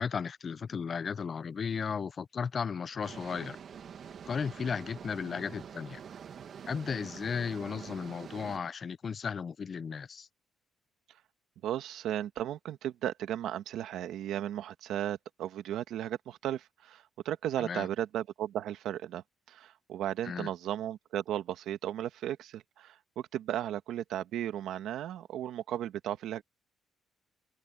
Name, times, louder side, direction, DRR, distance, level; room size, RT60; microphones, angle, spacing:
voice 1, 0.0-3.6 4.3-6.0 6.7-10.3 17.6-17.9 20.2-20.5, left 6 dB, 45° left, 0.7 m, -35 dB
sound 1, 3.0-8.6, right 7 dB, 55° right, 1.9 m, -46 dB
voice 2, 11.6-26.4, right 11 dB, 85° right, 1.6 m, -35 dB
cardioid pair, 90°, 0 cm